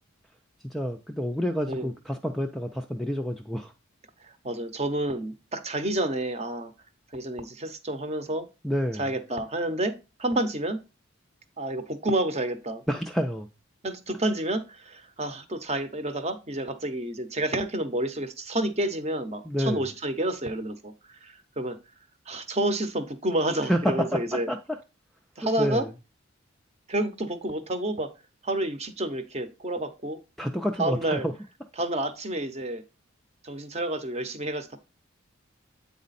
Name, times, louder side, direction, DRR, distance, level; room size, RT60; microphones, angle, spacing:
voice 1, 0.6-3.7 8.6-9.0 12.9-13.5 19.4-19.8 23.7-24.6 25.4-25.9 30.4-31.3, equal, ahead, 0.3 m, -28 dB
voice 2, 4.4-6.7 7.1-8.5 8.9-9.9 10.2-10.8 11.6-12.8 13.8-21.8 22.3-24.5 25.4-25.9 26.9-28.1 28.4-30.2 30.8-31.3 31.8-32.8 33.4-34.8, right 1 dB, 30° right, 0.7 m, -29 dB
8.5 x 4.0 x 4.1 m
head